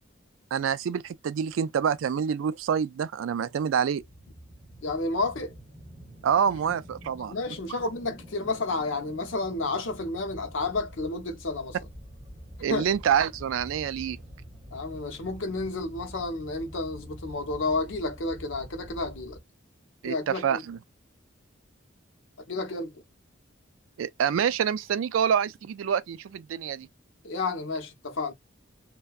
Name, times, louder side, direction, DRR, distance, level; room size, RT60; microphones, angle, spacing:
voice 1, 0.5-4.0 6.2-7.3 12.6-14.2 20.0-20.8 24.0-26.9, right 7 dB, 85° right, 0.3 m, -27 dB
sound 1, 4.0-19.4, equal, 30° right, 0.8 m, -47 dB
voice 2, 4.8-5.5 7.3-11.9 12.7-12.8 14.7-19.4 20.0-20.6 22.5-22.9 27.2-28.3, left 3 dB, 75° left, 0.8 m, -31 dB
2.7 x 2.2 x 2.3 m
head